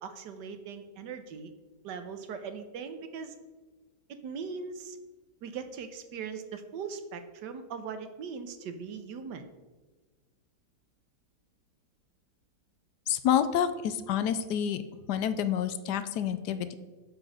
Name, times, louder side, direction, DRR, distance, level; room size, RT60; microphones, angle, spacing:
voice 1, 0.0-1.5 1.8-3.4 4.2-5.0 5.4-9.5, right 6 dB, 85° right, 8 dB, 1.5 m, -40 dB
voice 2, 13.1-14.8 15.1-16.7, left 9 dB, 75° left, 12 dB, 1.2 m, -28 dB
7.7 x 6.0 x 6.3 m, 1.3 s
omnidirectional pair, 1.8 m